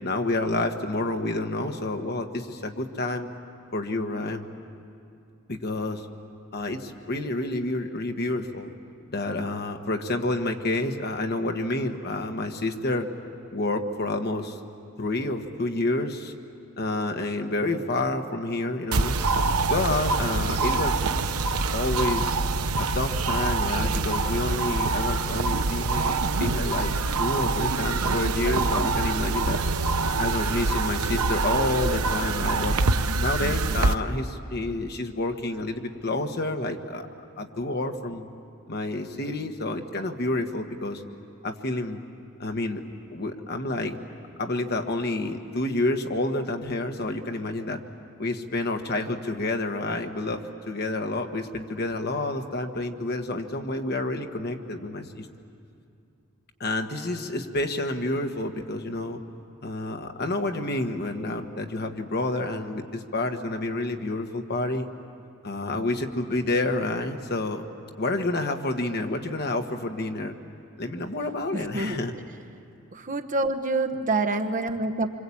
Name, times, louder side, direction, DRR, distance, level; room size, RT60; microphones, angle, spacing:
voice 1, 0.0-3.3 3.7-4.4 5.5-6.1 6.5-8.7 9.1-13.1 13.5-14.6 15.0-16.3 16.8-19.2 19.7-21.4 21.7-22.4 22.8-26.9 27.2-29.6 30.2-32.8 33.2-37.0 37.4-38.3 38.7-41.0 41.4-42.0 42.4-42.8 43.1-44.0 44.4-47.8 48.2-55.3 56.6-59.2 59.6-64.9 65.4-67.6 68.0-70.3 70.8-72.1, left 2 dB, 45° left, 5 dB, 1.4 m, -29 dB
sound 1, 18.9-33.9, right 3 dB, 80° right, 0.8 m, -25 dB
voice 2, 71.5-72.0 72.9-75.1, right 2 dB, 35° right, 6 dB, 1.1 m, -27 dB
27.0 x 25.5 x 8.6 m, 2.5 s
head